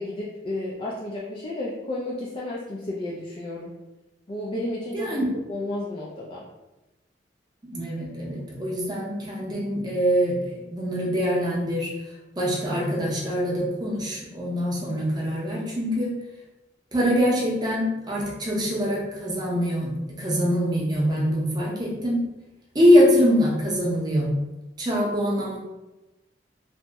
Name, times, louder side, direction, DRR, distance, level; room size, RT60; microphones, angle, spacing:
voice 1, 0.0-3.8 4.3-5.2 5.5-6.4, left 1 dB, 30° left, -5 dB, 0.3 m, -32 dB
voice 2, 7.6-11.9 12.4-16.1 16.9-19.9 20.2-22.2 22.7-24.3 24.8-25.6, equal, 25° right, -5 dB, 0.7 m, -23 dB
2.8 x 2.0 x 3.3 m, 1.0 s
head